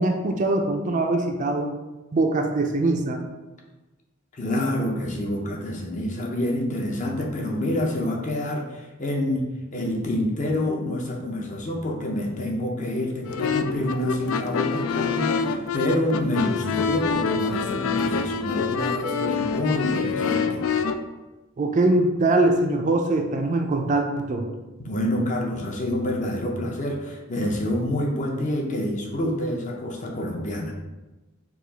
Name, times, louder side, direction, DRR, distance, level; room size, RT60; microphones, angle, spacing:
voice 1, 0.0-1.7 2.1-3.2 21.6-24.4, right 2 dB, 35° right, 3 dB, 0.4 m, -22 dB
voice 2, 4.3-9.4 9.7-20.6 24.8-30.7, left 1 dB, 35° left, 1 dB, 0.6 m, -27 dB
sound 1, 13.2-20.9, left 5 dB, 75° left, 0.3 m, -26 dB
4.7 x 2.4 x 3.9 m, 1.1 s
head